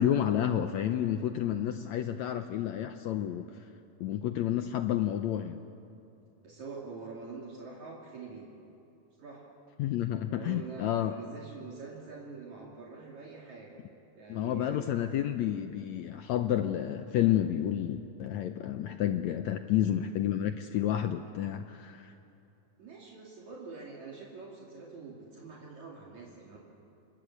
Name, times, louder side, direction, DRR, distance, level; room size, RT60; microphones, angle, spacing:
voice 1, 0.0-3.5 4.0-5.6 9.8-11.1 14.3-22.1, left 11 dB, 75° left, 8 dB, 1.7 m, -30 dB
voice 2, 6.4-8.5 9.2-9.5 10.3-13.9 14.2-14.9 22.8-26.6, right 4 dB, 55° right, -3 dB, 3.8 m, -45 dB
28.0 x 21.0 x 8.6 m, 2.8 s
omnidirectional pair, 4.0 m